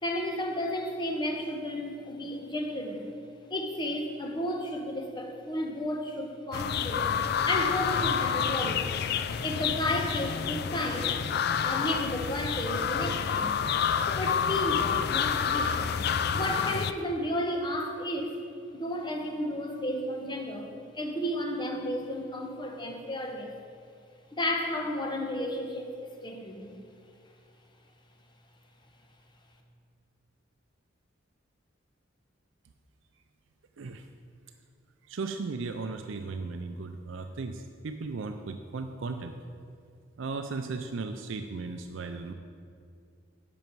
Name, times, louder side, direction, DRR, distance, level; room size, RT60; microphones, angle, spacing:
voice 1, 0.0-3.2 3.5-7.1 7.4-8.9 9.4-11.2 11.6-13.7 14.1-16.0 16.3-18.4 18.7-23.5 24.3-26.8, left 1 dB, 25° left, 2 dB, 1.0 m, -33 dB
sound 1, 6.5-16.9, left 7 dB, 55° left, 0.4 m, -28 dB
voice 2, 33.8-34.1 35.1-39.4 40.2-42.3, right 4 dB, 75° right, 7 dB, 0.5 m, -36 dB
10.5 x 6.9 x 4.6 m, 2.3 s
head